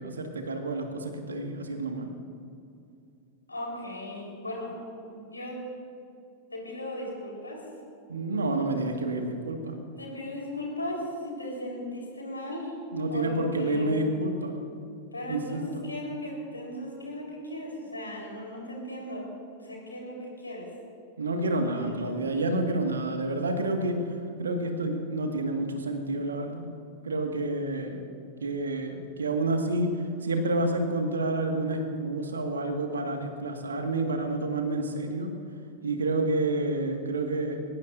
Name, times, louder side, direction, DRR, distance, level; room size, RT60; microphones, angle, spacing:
voice 1, 0.0-2.1 8.1-9.8 12.9-14.6 15.3-15.8 21.2-24.0 24.4-26.6 27.0-28.0 28.4-29.9 30.2-35.3 35.8-37.6, right 2 dB, 70° right, 4 dB, 1.9 m, -29 dB
voice 2, 3.5-4.8 5.1-5.6 6.5-7.6 10.0-12.7 13.1-14.1 15.1-19.3 19.6-20.7 21.7-22.2, left 1 dB, 80° left, -1 dB, 4.3 m, -37 dB
22.5 x 19.5 x 2.7 m, 2.5 s
figure-of-eight pair, 90°, 0 cm